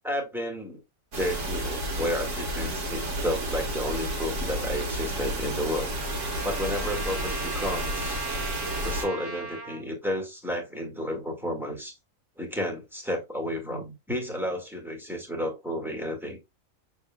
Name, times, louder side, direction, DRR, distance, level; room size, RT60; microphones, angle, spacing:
voice 1, 0.0-0.8 1.1-5.9 6.4-8.2 8.8-11.9 12.4-16.4, equal, ahead, 1.7 m, -32 dB
sound 1, 1.1-9.1, right 1 dB, 60° right, 1.7 m, -31 dB
Trumpet, 4.7-9.8, right 3 dB, 20° right, 0.9 m, -38 dB
6.4 x 3.7 x 2.2 m
omnidirectional pair, 1.5 m